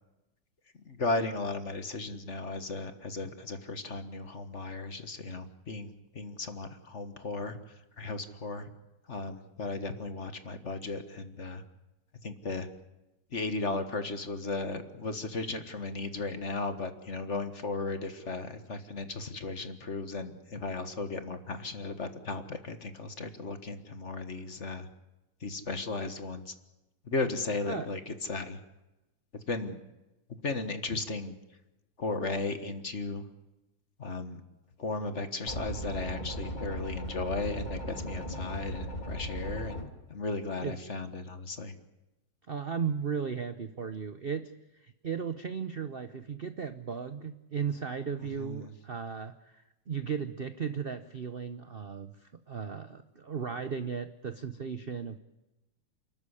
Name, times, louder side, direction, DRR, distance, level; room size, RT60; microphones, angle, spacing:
voice 1, 0.8-7.6 8.0-8.7 9.1-11.6 12.2-12.7 13.3-24.9 25.4-26.5 27.0-28.6 29.5-29.8 30.4-31.4 32.0-33.2 34.0-34.4 34.8-39.8 40.1-41.7 48.4-48.7, left 3 dB, 35° left, 9 dB, 1.6 m, -35 dB
sound 1, 35.5-39.9, equal, 20° left, 2.4 m, -37 dB
voice 2, 42.5-44.5 44.8-55.2, right 6 dB, 65° right, 10 dB, 0.5 m, -36 dB
29.0 x 13.0 x 9.9 m, 1.0 s
omnidirectional pair, 2.3 m